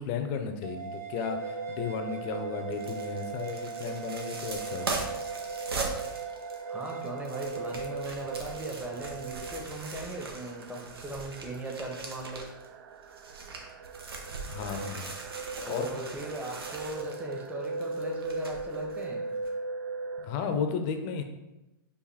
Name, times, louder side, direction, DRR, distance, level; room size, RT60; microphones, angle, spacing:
voice 1, 0.0-5.0 14.5-15.1 15.7-16.0 20.2-21.2, left 6 dB, 40° left, 6 dB, 0.6 m, -34 dB
sound 1, 0.6-9.7, right 8 dB, 45° right, 1.3 m, -42 dB
sound 2, 1.2-20.3, right 3 dB, 60° right, 0.5 m, -40 dB
Handling and opening a bubble mailer, 2.7-12.7 13.0-19.0 19.4-19.5, right 3 dB, 85° right, 0.9 m, -40 dB
voice 2, 6.7-12.4 15.6-19.3, right 1 dB, 10° right, 0 dB, 0.9 m, -38 dB
4.9 x 2.6 x 4.1 m, 0.99 s
hypercardioid pair, 115°, 12 cm